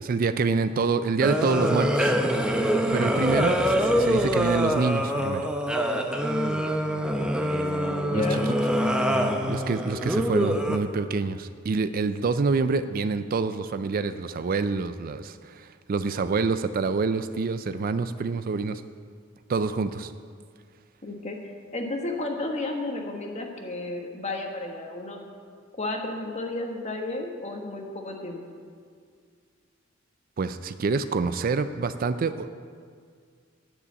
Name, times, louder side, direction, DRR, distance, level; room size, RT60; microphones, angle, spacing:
voice 1, 0.0-2.1 2.9-5.5 8.1-8.4 9.5-18.8 19.5-20.1 30.4-32.5, right 4 dB, 45° right, 12 dB, 0.4 m, -27 dB
sound 1, 1.2-10.8, equal, 5° right, 0.7 m, -25 dB
voice 2, 2.8-3.2 7.9-8.5 21.0-25.3 25.7-28.4, left 2 dB, 35° left, 2 dB, 1.3 m, -33 dB
10.0 x 6.9 x 8.4 m, 2.1 s
head